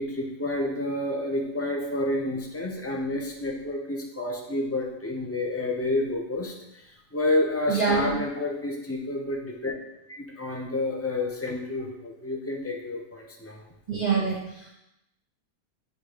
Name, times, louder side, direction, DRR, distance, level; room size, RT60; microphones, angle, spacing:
voice 1, 0.0-6.5 7.1-9.7 10.1-13.6, left 2 dB, 15° left, 0 dB, 0.5 m, -29 dB
voice 2, 7.7-8.1 13.9-14.7, right 5 dB, 30° right, -4 dB, 0.9 m, -26 dB
8.3 x 2.9 x 5.0 m, 0.87 s
omnidirectional pair, 1.7 m